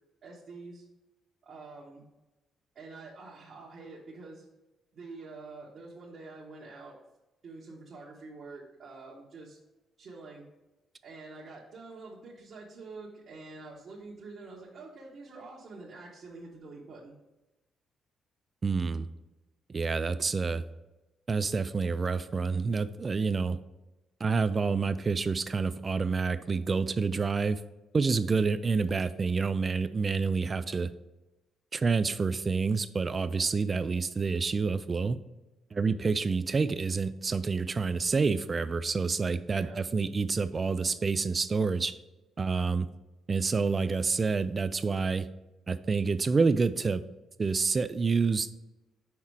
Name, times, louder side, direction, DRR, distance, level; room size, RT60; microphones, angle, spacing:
voice 1, 0.2-0.8 1.4-2.0 2.7-4.4 4.9-6.9 7.4-9.6 10.0-10.4 11.0-17.1 39.5-39.8, right 3 dB, 55° right, -4 dB, 1.2 m, -46 dB
voice 2, 18.6-19.1 19.7-20.6 21.3-23.6 24.2-27.6 27.9-30.9 31.7-35.2 35.7-42.0 42.4-42.9 43.3-45.3 45.7-47.0 47.4-48.5, right 4 dB, 35° right, 13 dB, 0.4 m, -28 dB
5.8 x 4.2 x 4.8 m, 1.0 s
cardioid pair, 90°, 0 cm